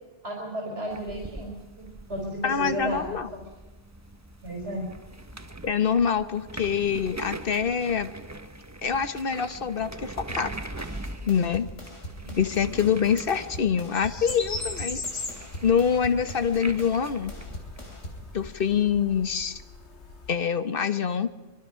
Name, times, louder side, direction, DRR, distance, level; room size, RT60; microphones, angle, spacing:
voice 1, 0.2-3.2 4.4-4.9 12.2-12.4, equal, 60° right, 0 dB, 4.2 m, -34 dB
sound 1, 0.9-18.5, right 2 dB, 15° right, 0.8 m, -42 dB
voice 2, 2.4-3.3 5.6-8.1 8.8-10.5 11.3-11.7 12.4-15.0 15.6-17.3 18.3-19.6 20.3-21.3, left 7 dB, 50° left, 11 dB, 1.3 m, -25 dB
sound 2, 10.3-18.3, equal, 85° left, 4.0 m, -42 dB
sound 3, 13.9-20.3, left 3 dB, 65° left, 2.3 m, -39 dB
24.5 x 23.5 x 5.7 m, 1.2 s
omnidirectional pair, 1.2 m